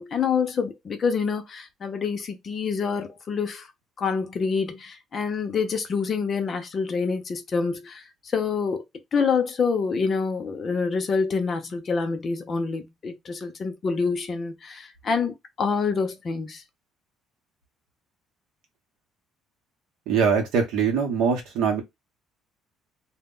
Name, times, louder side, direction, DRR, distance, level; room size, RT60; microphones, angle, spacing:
voice 1, 0.0-3.7 4.0-8.0 8.3-8.8 9.1-16.6, left 5 dB, 30° left, 0.5 m, -26 dB
voice 2, 20.1-21.8, right 6 dB, 75° right, 0.7 m, -22 dB
2.1 x 2.0 x 3.6 m
cardioid pair, 155°, 0 cm